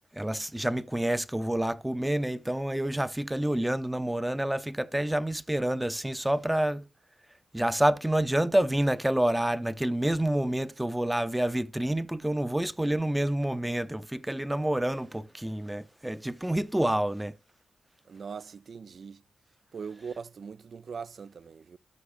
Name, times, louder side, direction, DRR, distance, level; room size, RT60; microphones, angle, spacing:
voice 1, 0.1-6.9 7.5-17.4, right 1 dB, 10° right, 0.6 m, -28 dB
voice 2, 18.1-19.2 19.7-21.8, right 6 dB, 55° right, 0.3 m, -41 dB
13.0 x 6.2 x 2.4 m
cardioid pair, 85°, 0 cm